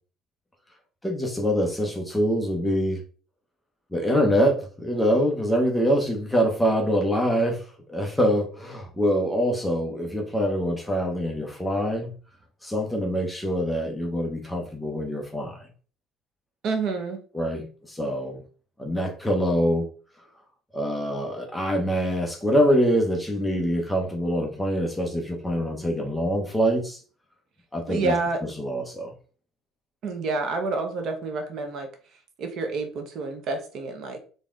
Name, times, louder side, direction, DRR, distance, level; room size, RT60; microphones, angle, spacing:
voice 1, 1.0-3.0 3.9-12.1 12.6-15.7 17.3-18.4 18.8-19.9 20.7-27.0 27.7-28.2 28.6-29.1, equal, 5° left, 1 dB, 0.8 m, -24 dB
voice 2, 16.6-17.2 27.9-28.4 30.0-31.9 32.4-34.2, right 3 dB, 45° right, 5 dB, 0.9 m, -28 dB
4.0 x 3.6 x 3.7 m, 0.39 s
cardioid pair, 180°, 0 cm